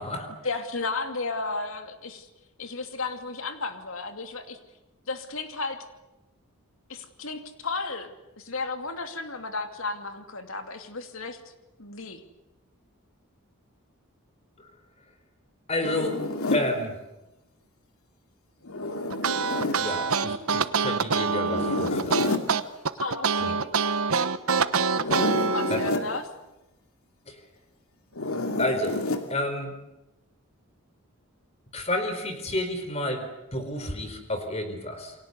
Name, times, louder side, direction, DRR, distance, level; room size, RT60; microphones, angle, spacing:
voice 1, 0.4-2.3 2.6-4.6 5.1-5.8 6.9-11.5 11.8-12.2 22.9-23.7 25.4-26.2, left 3 dB, 70° left, 7 dB, 2.6 m, -33 dB
voice 2, 15.7-16.2 16.5-17.0 19.8-22.3 25.7-25.8 27.3-27.4 28.6-29.0 29.3-29.7 31.7-35.1, left 1 dB, 30° left, 7 dB, 4.6 m, -30 dB
Zipper (clothing), 15.8-16.7 18.7-19.8 21.4-22.5 24.9-26.1 28.1-29.3, left 2 dB, 90° left, 2.7 m, -29 dB
sound 1, 19.1-25.9, right 5 dB, 80° right, 1.2 m, -25 dB
29.0 x 23.5 x 8.1 m, 0.93 s
head